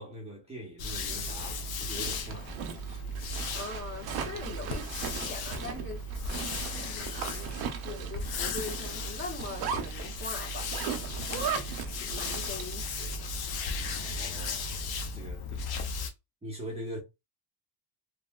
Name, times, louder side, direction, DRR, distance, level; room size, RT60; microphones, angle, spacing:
voice 1, 0.0-2.5 2.8-3.0 4.5-4.8 11.1-11.5 13.8-15.7 16.4-17.0, right 1 dB, 15° right, 0.8 m, -43 dB
sound 1, 0.8-16.1, left 3 dB, 55° left, 0.7 m, -36 dB
Zipper (clothing), 1.7-12.9, right 7 dB, 55° right, 0.6 m, -38 dB
voice 2, 3.5-6.0 6.4-13.3, left 2 dB, 30° left, 1.4 m, -43 dB
3.0 x 2.5 x 2.2 m
cardioid pair, 130°, 45 cm